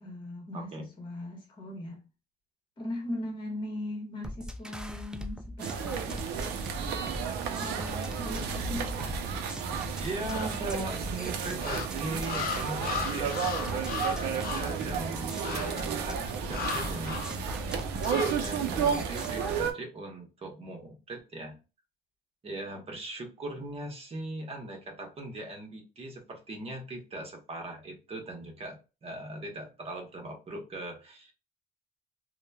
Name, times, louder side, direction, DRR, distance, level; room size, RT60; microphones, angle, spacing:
voice 1, 0.0-2.1 2.8-6.6 7.4-9.2 10.2-10.3 16.4-17.0, left 1 dB, 30° left, 1.0 m, -40 dB
voice 2, 0.5-0.8 10.0-17.3 18.1-21.6 22.4-31.3, right 1 dB, 35° right, 0.9 m, -40 dB
sound 1, 4.2-19.7, equal, 5° right, 0.4 m, -41 dB
sound 2, 5.6-19.7, right 7 dB, 80° right, 0.5 m, -32 dB
sound 3, 10.3-10.9 11.6-14.8 15.4-15.9 16.5-17.4 18.0-18.5, left 6 dB, 60° left, 0.5 m, -36 dB
2.9 x 2.1 x 2.2 m
cardioid pair, 110°, 17 cm